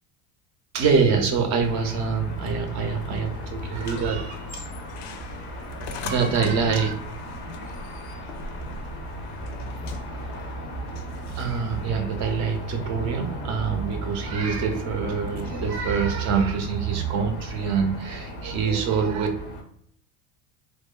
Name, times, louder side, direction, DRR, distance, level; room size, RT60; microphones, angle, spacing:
voice 1, 0.7-4.7 5.9-6.9 11.3-19.3, right 5 dB, 40° right, 5 dB, 0.4 m, -25 dB
sound 1, 1.6-19.6, right 2 dB, 30° left, 0.4 m, -35 dB
sound 2, 3.7-11.8, left 4 dB, 90° left, 0.5 m, -41 dB
2.8 x 2.1 x 2.2 m, 0.71 s
cardioid pair, 150°, 45 cm